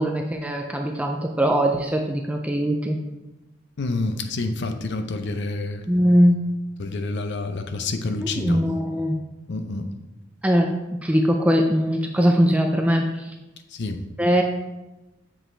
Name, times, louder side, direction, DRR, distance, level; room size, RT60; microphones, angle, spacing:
voice 1, 0.0-3.0 5.9-6.4 8.2-9.2 10.4-10.7 11.0-13.3 14.2-14.4, equal, 5° right, 2 dB, 0.4 m, -21 dB
voice 2, 3.8-5.8 6.8-8.7 9.5-9.9 13.7-14.0, left 2 dB, 60° left, 7 dB, 0.6 m, -28 dB
7.5 x 4.9 x 3.3 m, 1.0 s
head